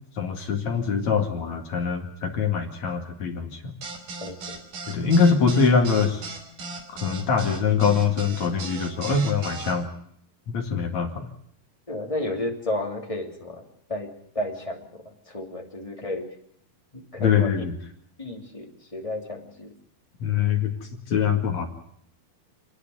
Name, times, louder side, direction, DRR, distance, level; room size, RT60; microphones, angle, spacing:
voice 1, 0.2-3.5 4.9-6.2 7.0-9.9 10.5-11.3 17.2-17.7 20.2-20.7 21.1-21.7, left 5 dB, 50° left, 4 dB, 3.2 m, -23 dB
sound 1, 3.8-9.7, right 3 dB, 60° right, 4.5 m, -37 dB
voice 2, 4.2-4.6 11.9-13.6 13.9-14.1 14.3-14.9 15.3-16.3 16.9-17.6 18.2-19.7, left 1 dB, 10° left, 1 dB, 2.4 m, -32 dB
30.0 x 10.0 x 9.4 m, 0.68 s
omnidirectional pair, 4.3 m